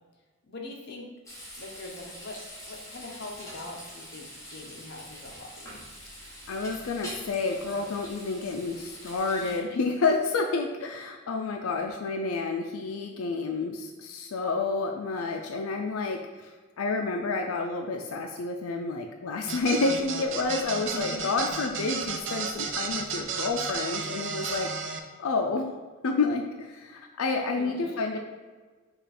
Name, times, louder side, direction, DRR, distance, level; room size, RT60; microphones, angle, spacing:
voice 1, 0.5-1.1 1.6-2.4 2.7-5.8 9.4-9.9 20.9-21.2 27.6-28.2, left 2 dB, 50° left, 0 dB, 0.8 m, -42 dB
Frying (food), 1.3-9.6, equal, 15° left, 1.0 m, -44 dB
voice 2, 6.5-16.5 16.8-24.7 25.2-25.6 26.0-28.2, left 3 dB, 85° left, 3 dB, 0.4 m, -29 dB
sound 1, 19.5-25.0, right 5 dB, 60° right, 0.5 m, -33 dB
5.1 x 2.4 x 4.2 m, 1.4 s
head